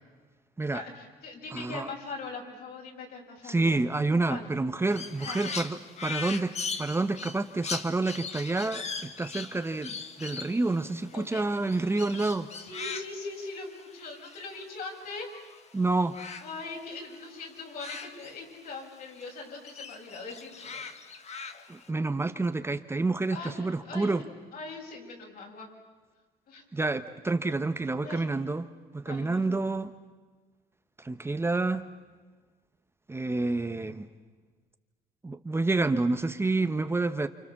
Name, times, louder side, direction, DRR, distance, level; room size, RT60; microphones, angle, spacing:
voice 1, 0.7-3.8 4.3-4.5 5.2-5.5 11.1-11.4 12.5-15.3 16.4-20.8 23.3-24.1 24.5-25.7 26.5-26.6 28.0-28.3 29.0-29.4, left 3 dB, 60° left, 0 dB, 7.4 m, -41 dB
voice 2, 1.5-1.9 3.4-12.5 15.7-16.2 21.7-24.2 26.7-28.7 28.9-29.9 31.0-31.8 33.1-34.1 35.2-37.3, right 3 dB, 15° right, 8 dB, 1.0 m, -28 dB
Crow, 4.9-15.6 15.9-18.9 19.2-21.9, left 5 dB, 40° left, 1.8 m, -40 dB
29.5 x 27.5 x 7.3 m, 1.4 s
cardioid pair, 110°, 17 cm